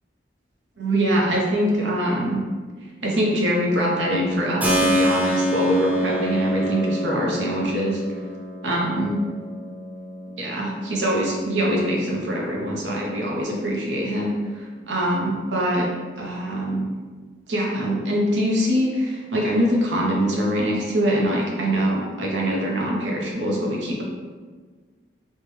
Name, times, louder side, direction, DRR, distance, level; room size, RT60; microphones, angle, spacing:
voice 1, 0.8-2.4 3.0-8.0 8.6-9.2 10.3-15.9 16.2-16.9 17.5-24.0, equal, 80° right, -2 dB, 0.7 m, -23 dB
Keyboard (musical), 4.6-13.2, equal, 10° right, 0.4 m, -28 dB
3.3 x 2.1 x 3.1 m, 1.4 s
head